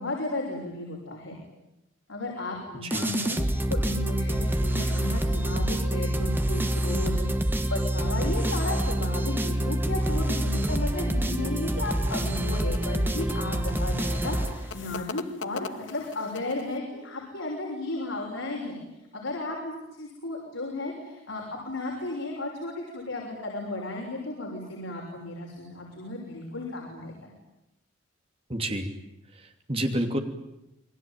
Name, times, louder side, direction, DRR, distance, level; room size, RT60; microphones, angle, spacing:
voice 1, 0.0-1.4 2.1-18.7 19.1-27.3, left 2 dB, 90° left, -2 dB, 6.3 m, -34 dB
sound 1, 2.9-15.0, right 1 dB, 10° right, 1.4 m, -27 dB
sound 2, 11.6-16.8, left 5 dB, 70° left, 1.2 m, -42 dB
voice 2, 28.5-28.9 29.4-30.2, right 1 dB, 30° right, 4 dB, 2.9 m, -29 dB
28.5 x 21.0 x 9.2 m, 0.90 s
head